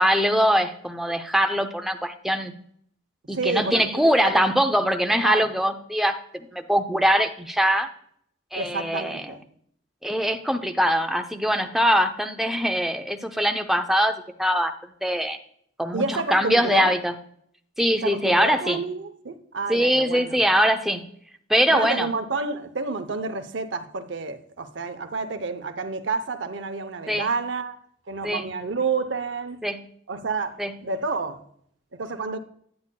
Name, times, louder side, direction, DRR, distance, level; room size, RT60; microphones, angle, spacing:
voice 1, 0.0-2.5 3.3-7.9 8.5-9.3 10.0-14.7 15.0-15.4 15.8-17.1 17.8-18.8 19.7-21.1 21.5-22.1 27.1-27.3 28.2-28.5 29.6-29.8 30.6-30.7, equal, ahead, 0.5 m, -22 dB
voice 2, 3.3-3.9 4.2-4.5 5.2-5.5 8.5-9.4 15.9-16.9 18.0-20.4 21.7-27.8 28.1-29.6 30.1-31.4 31.9-32.4, right 4 dB, 75° right, 0.7 m, -29 dB
9.5 x 8.3 x 2.2 m
head